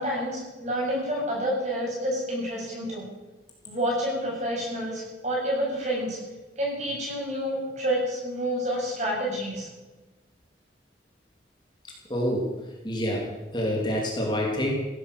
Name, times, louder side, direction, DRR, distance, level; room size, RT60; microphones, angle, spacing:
voice 1, 0.0-3.1 3.6-6.2 6.6-9.7, equal, 40° right, -3 dB, 7.8 m, -29 dB
voice 2, 12.1-12.5 12.8-14.7, equal, 25° left, -1 dB, 3.0 m, -27 dB
16.5 x 12.5 x 6.8 m, 1.1 s
head